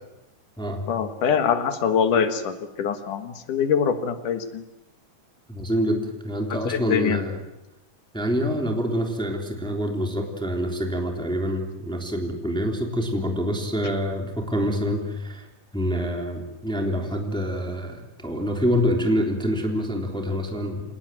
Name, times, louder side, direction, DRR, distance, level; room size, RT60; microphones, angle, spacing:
voice 1, 0.9-4.6 6.5-7.2, left 7 dB, 70° left, 9 dB, 3.0 m, -24 dB
voice 2, 5.5-7.4 8.1-15.5 15.7-20.9, equal, ahead, 3 dB, 2.9 m, -26 dB
27.0 x 19.0 x 9.2 m, 0.94 s
omnidirectional pair, 3.9 m